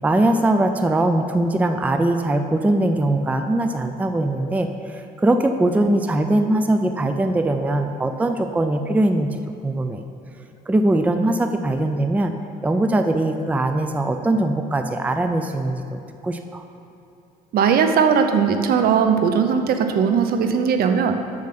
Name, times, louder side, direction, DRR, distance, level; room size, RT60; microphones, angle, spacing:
voice 1, 0.0-10.0 10.7-12.3 12.6-16.6, right 1 dB, 10° right, 7 dB, 0.4 m, -21 dB
voice 2, 17.5-21.1, right 6 dB, 65° right, 7 dB, 0.7 m, -18 dB
7.2 x 6.4 x 5.8 m, 2.8 s
cardioid pair, 110°, 17 cm